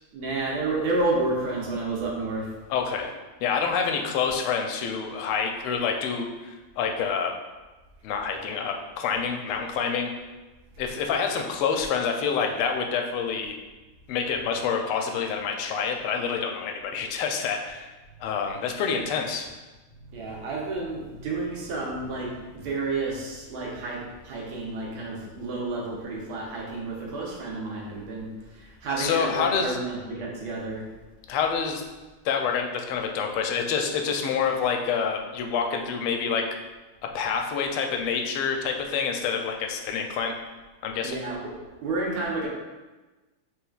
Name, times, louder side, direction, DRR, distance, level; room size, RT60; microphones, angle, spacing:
voice 1, 0.1-2.5 20.1-30.8 41.0-41.5 41.8-42.5, right 3 dB, 75° right, -2 dB, 1.6 m, -30 dB
voice 2, 2.7-3.1 3.4-7.3 8.0-10.1 10.8-13.6 14.1-17.9 18.2-19.5 28.9-29.8 31.3-31.8 32.2-36.5 37.1-40.3 40.8-41.2, left 6 dB, 85° left, 3 dB, 1.5 m, -27 dB
5.8 x 3.4 x 2.3 m, 1.2 s
omnidirectional pair, 2.3 m